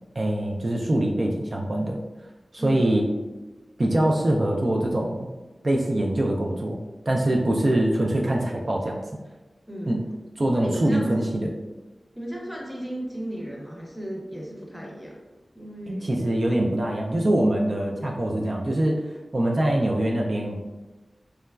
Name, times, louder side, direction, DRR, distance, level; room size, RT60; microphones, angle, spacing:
voice 1, 0.2-2.0 2.5-3.1 3.8-5.3 5.6-6.8 7.1-9.0 9.9-10.0 10.4-11.5 15.9-19.0 19.3-20.6, right 1 dB, 55° right, 0 dB, 0.3 m, -23 dB
voice 2, 2.6-2.9 7.5-7.8 9.7-10.0 10.5-11.4 12.1-15.2 15.5-16.1, equal, ahead, -2 dB, 0.7 m, -35 dB
3.0 x 2.2 x 2.2 m, 1.1 s
wide cardioid pair, 55°, 0 cm